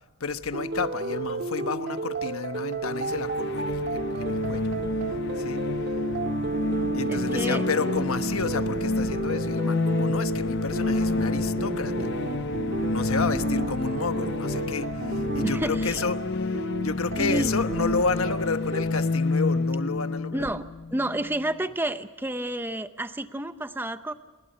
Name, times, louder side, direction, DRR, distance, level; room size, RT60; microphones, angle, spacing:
voice 1, 0.2-4.7 5.4-5.6 6.9-12.1 12.9-20.5, left 4 dB, 80° left, 10 dB, 1.2 m, -31 dB
sound 1, 0.5-18.8, right 3 dB, 50° right, 1.9 m, -32 dB
sound 2, 2.9-21.5, left 2 dB, 55° left, 0.8 m, -29 dB
voice 2, 7.1-7.7 15.4-16.0 17.2-17.5 20.3-20.6 20.9-24.1, right 1 dB, 10° right, 10 dB, 0.7 m, -30 dB
29.5 x 20.5 x 5.6 m, 1.2 s
head